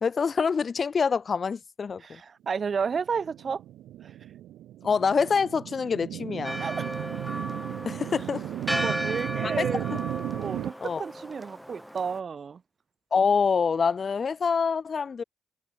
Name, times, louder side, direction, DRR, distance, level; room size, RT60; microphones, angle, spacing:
voice 1, 0.0-2.2 4.8-6.6 7.8-8.4 9.4-9.6 9.9-10.0 10.8-11.0 13.1-15.2, left 5 dB, 40° left, 1.3 m, -26 dB
voice 2, 2.0-3.6 4.0-4.1 6.6-6.9 8.8-9.8 10.4-12.6, right 6 dB, 45° right, 1.0 m, -32 dB
sound 1, 3.0-10.7, right 13 dB, 80° right, 0.5 m, -35 dB
Church bell, 6.4-12.2, equal, ahead, 0.3 m, -35 dB
cardioid pair, 90°, 0 cm